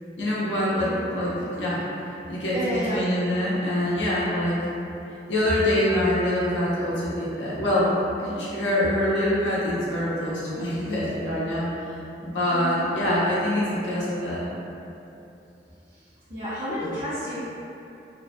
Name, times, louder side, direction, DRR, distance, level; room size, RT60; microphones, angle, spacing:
voice 1, 0.2-1.8 2.3-2.6 2.9-4.6 5.3-11.7 12.2-14.5, left 1 dB, 90° left, -8 dB, 0.6 m, -25 dB
voice 2, 2.5-3.1 12.5-12.7 15.9-16.0 16.3-17.4, equal, 50° right, -14 dB, 0.6 m, -30 dB
2.5 x 2.2 x 2.6 m, 2.8 s
head